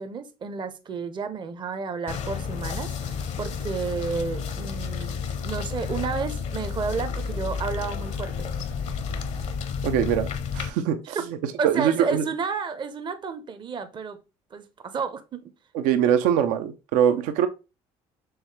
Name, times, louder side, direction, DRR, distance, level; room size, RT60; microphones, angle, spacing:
voice 1, 0.0-8.3 11.0-11.2 11.6-14.2 14.5-15.4, right 5 dB, 35° right, 0.6 m, -31 dB
sound 1, 2.1-10.7, left 6 dB, 60° left, 0.7 m, -31 dB
voice 2, 9.8-11.2 11.6-12.2 15.7-17.5, right 9 dB, 75° right, 0.5 m, -23 dB
4.7 x 3.2 x 3.2 m
supercardioid pair, 75°, 13 cm